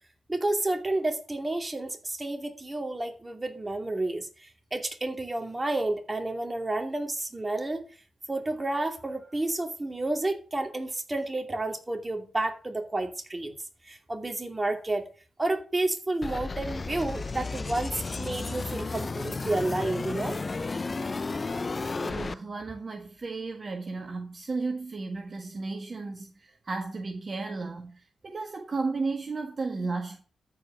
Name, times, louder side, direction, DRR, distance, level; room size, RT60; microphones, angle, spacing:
voice 1, 0.3-4.3 4.7-7.9 8.3-13.5 13.9-15.1 15.4-20.4, right 2 dB, 25° right, 2.7 m, -30 dB
sound 1, 16.2-22.3, left 3 dB, 40° left, 0.6 m, -33 dB
voice 2, 21.9-30.2, right 3 dB, 50° right, 1.5 m, -34 dB
13.0 x 5.1 x 6.1 m
supercardioid pair, 50°, 0 cm